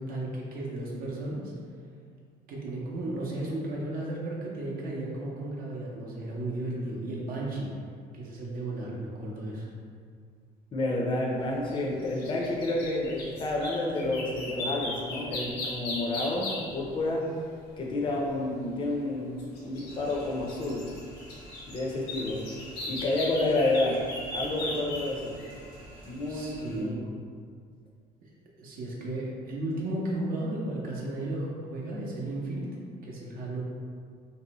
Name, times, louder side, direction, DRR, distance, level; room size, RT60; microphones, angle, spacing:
voice 1, 0.0-1.5 2.5-7.7 8.1-9.7 26.3-27.0 28.6-32.7 33.0-33.6, right 1 dB, 60° right, -4 dB, 0.6 m, -34 dB
voice 2, 10.7-17.3 17.8-20.9 21.7-22.4 22.8-24.0 24.3-25.4 26.1-27.0, left 2 dB, 30° left, -2 dB, 0.4 m, -30 dB
sound 1, 11.7-16.9 19.2-25.7 26.3-26.4, left 2 dB, 75° left, 0.7 m, -38 dB
sound 2, 19.9-26.8, equal, 30° right, 0.9 m, -50 dB
2.6 x 2.1 x 2.8 m, 2.1 s
cardioid pair, 110°, 17 cm